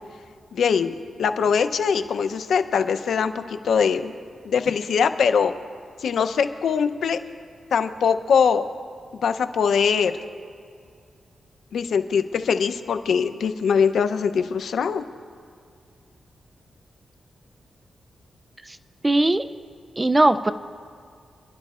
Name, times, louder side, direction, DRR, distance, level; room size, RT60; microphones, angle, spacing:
voice 1, 0.5-4.1 4.4-5.5 6.0-7.2 7.7-8.6 9.2-10.1 11.7-15.0, left 6 dB, 75° left, 9 dB, 0.6 m, -22 dB
voice 2, 19.0-19.5 20.0-20.5, right 2 dB, 15° right, 12 dB, 0.4 m, -19 dB
29.0 x 11.5 x 2.4 m, 2.2 s
wide cardioid pair, 135°, 0 cm